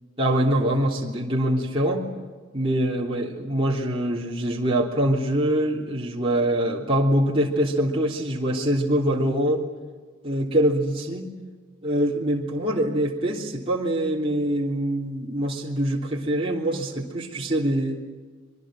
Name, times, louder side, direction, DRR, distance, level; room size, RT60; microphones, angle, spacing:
voice 1, 0.2-2.0 2.5-9.6 10.2-11.3 11.8-18.0, right 1 dB, 25° right, -4 dB, 3.3 m, -24 dB
26.5 x 22.5 x 7.7 m, 1.4 s
head